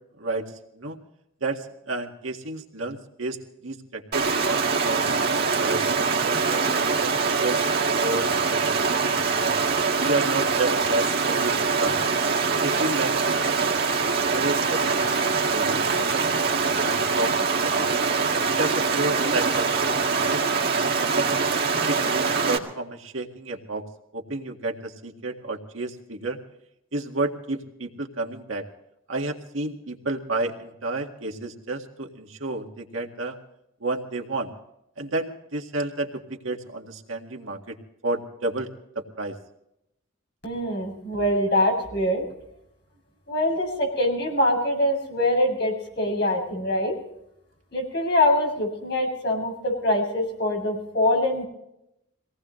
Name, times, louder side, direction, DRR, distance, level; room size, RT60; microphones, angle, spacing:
voice 1, 1.4-3.4 3.6-7.1 7.4-7.6 8.0-9.6 10.1-12.2 12.6-13.7 14.2-16.2 16.6-17.3 17.6-18.0 18.6-20.4 20.8-21.5 21.9-23.8 24.1-26.4 26.9-28.6 29.1-33.4 33.8-34.5 35.0-37.8 38.0-38.7 39.0-39.4, right 2 dB, 75° right, 2 dB, 1.9 m, -31 dB
Stream, 4.1-22.6, right 4 dB, 50° right, 2.0 m, -23 dB
voice 2, 40.4-42.2 43.3-46.9 47.7-51.4, left 1 dB, 55° left, 0 dB, 7.5 m, -24 dB
24.0 x 18.5 x 3.2 m, 0.82 s
head